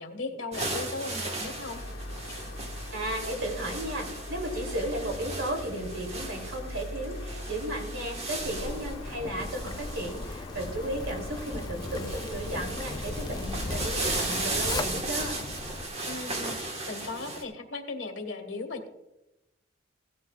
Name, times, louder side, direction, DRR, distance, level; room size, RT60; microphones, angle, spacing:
voice 1, 0.0-1.8 2.3-2.4 16.1-18.9, left 3 dB, 65° left, 5 dB, 1.6 m, -37 dB
sound 1, 0.5-17.4, right 2 dB, 35° right, 1.5 m, -37 dB
sound 2, 1.4-14.5, left 1 dB, 85° left, 1.2 m, -41 dB
voice 2, 2.9-15.4, right 1 dB, 90° right, 2 dB, 3.0 m, -34 dB
Zipper (clothing), 8.3-15.9, left 3 dB, 20° left, 0.3 m, -37 dB
16.5 x 12.0 x 2.4 m, 0.91 s
head